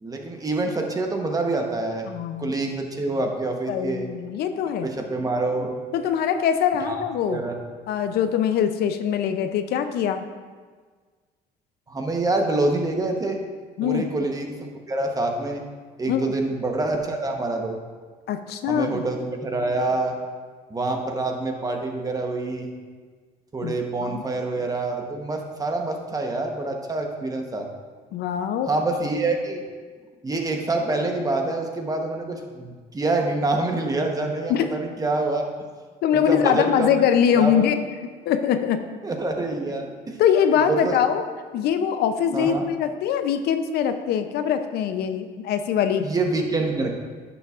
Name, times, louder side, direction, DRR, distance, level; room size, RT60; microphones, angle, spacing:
voice 1, 0.0-2.1 2.4-4.1 4.8-5.7 6.9-7.5 11.9-13.4 13.8-15.6 16.0-17.8 18.7-20.1 20.7-22.7 23.5-27.7 28.7-29.6 30.2-35.4 36.1-37.0 37.3-37.7 39.0-40.2 40.7-41.0 42.3-42.7 46.0-47.0, right 2 dB, 20° right, 3 dB, 1.0 m, -26 dB
voice 2, 2.1-2.6 3.7-4.9 5.9-7.4 7.9-10.3 13.8-14.1 16.1-16.3 18.3-19.0 23.6-23.7 24.0-24.2 28.1-28.7 34.5-34.7 36.0-38.8 40.2-41.2 41.5-46.1, left 8 dB, 70° left, 9 dB, 0.5 m, -23 dB
10.0 x 7.0 x 2.4 m, 1.5 s
cardioid pair, 110°, 17 cm